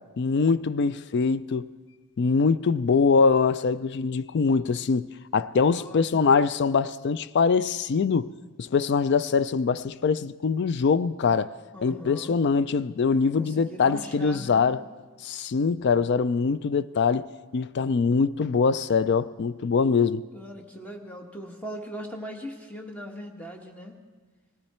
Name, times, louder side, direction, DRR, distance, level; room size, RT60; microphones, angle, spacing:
voice 1, 0.2-1.7 2.2-5.1 5.3-8.3 8.6-11.5 11.8-14.8 15.2-17.3 17.5-20.2, left 5 dB, 50° left, 0.4 m, -23 dB
voice 2, 5.6-6.2 11.7-12.4 13.4-14.7 20.3-23.9, equal, 5° left, 1.3 m, -40 dB
19.5 x 15.0 x 4.3 m
head